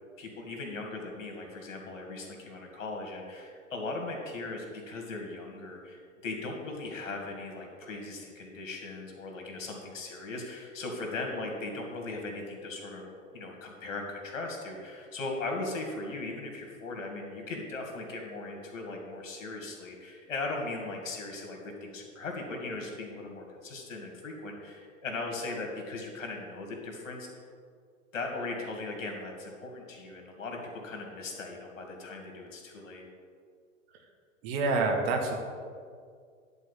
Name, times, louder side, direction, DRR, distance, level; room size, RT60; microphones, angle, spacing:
voice 1, 0.2-27.3 28.1-33.1, left 3 dB, 70° left, 1 dB, 2.5 m, -38 dB
voice 2, 34.4-35.4, right 3 dB, 50° right, 2 dB, 1.8 m, -27 dB
11.0 x 4.4 x 7.4 m, 2.1 s
figure-of-eight pair, 95°, 39 cm